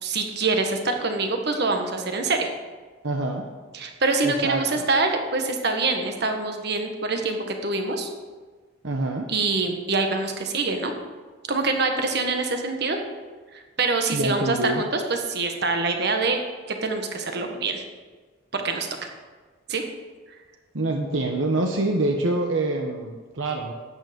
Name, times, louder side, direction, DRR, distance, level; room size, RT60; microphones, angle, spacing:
voice 1, 0.0-2.5 3.7-8.1 9.3-10.9 11.5-13.0 13.5-16.4 16.7-17.8 18.5-18.9 19.7-19.8, right 3 dB, 60° right, 4 dB, 1.5 m, -25 dB
voice 2, 3.0-3.5 4.2-4.9 8.8-9.3 14.1-14.8 20.7-23.7, right 2 dB, 75° right, 2 dB, 1.1 m, -26 dB
12.5 x 9.4 x 5.3 m, 1.4 s
head